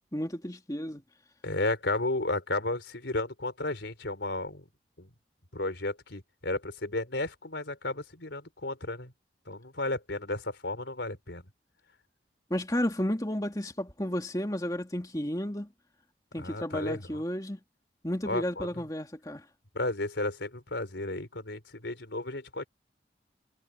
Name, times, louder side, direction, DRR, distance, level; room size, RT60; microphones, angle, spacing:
voice 1, 0.1-1.0 12.5-15.7 16.3-17.6 18.0-19.5, equal, 20° left, 2.6 m, -32 dB
voice 2, 1.4-4.6 5.0-5.1 5.5-9.1 9.5-11.4 16.4-17.2 18.3-18.7 19.7-22.7, left 2 dB, 90° left, 4.4 m, -33 dB
head